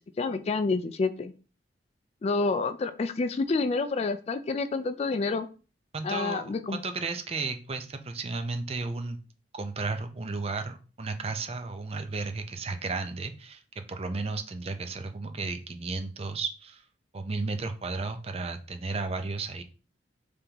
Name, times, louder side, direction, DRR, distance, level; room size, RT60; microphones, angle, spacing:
voice 1, 0.2-1.3 2.2-5.5 6.0-6.8, left 3 dB, 35° left, 10 dB, 0.3 m, -28 dB
voice 2, 5.9-9.2 9.5-16.8 17.1-19.6, right 3 dB, 35° right, 7 dB, 0.5 m, -34 dB
5.3 x 3.4 x 2.9 m, 0.36 s
head